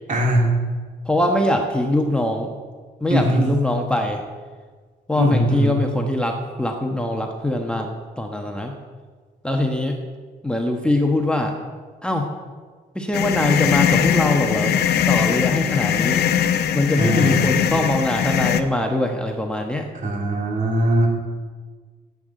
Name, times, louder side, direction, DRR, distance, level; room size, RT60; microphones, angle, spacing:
voice 1, 0.1-0.5 3.1-3.5 5.1-5.8 16.9-17.4 20.0-21.1, right 1 dB, 50° right, 0 dB, 3.2 m, -20 dB
voice 2, 1.0-2.5 3.0-4.2 5.1-8.7 9.4-10.0 10.4-11.5 12.0-12.3 12.9-16.2 16.7-19.9, left 1 dB, 5° left, 2 dB, 1.1 m, -22 dB
sound 1, 13.1-18.6, left 9 dB, 80° left, 0.8 m, -20 dB
10.5 x 8.1 x 9.0 m, 1.5 s
cardioid pair, 115°, 17 cm